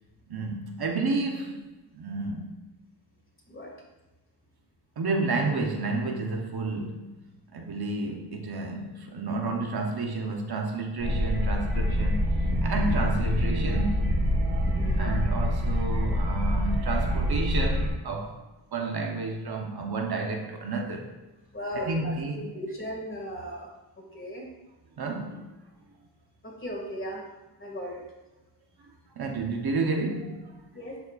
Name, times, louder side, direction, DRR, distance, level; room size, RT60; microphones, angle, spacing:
voice 1, 0.3-1.6 1.9-2.5 5.0-7.1 7.5-14.1 15.0-18.4 18.7-21.1 21.7-22.4 25.0-25.5 29.2-30.6, right 3 dB, 60° right, 2 dB, 0.9 m, -31 dB
sound 1, 11.0-17.9, equal, 80° right, 1.3 m, -26 dB
voice 2, 14.7-15.3 21.5-23.7 24.1-24.5 26.4-27.2 27.6-28.0 30.7-31.0, equal, 30° left, -2 dB, 1.9 m, -37 dB
11.0 x 4.2 x 2.4 m, 1.1 s
wide cardioid pair, 95°, 44 cm